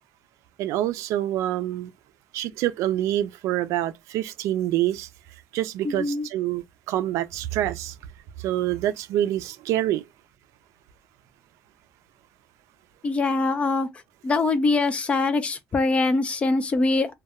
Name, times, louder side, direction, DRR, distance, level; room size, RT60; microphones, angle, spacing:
voice 1, 0.6-1.9 2.3-5.1 5.5-7.9 8.4-10.0, right 13 dB, 85° right, 0.4 m, -26 dB
voice 2, 5.8-6.3 13.0-13.9 14.2-17.1, left 3 dB, 25° left, 0.4 m, -23 dB
2.2 x 2.1 x 3.4 m
cardioid pair, 155°, 5 cm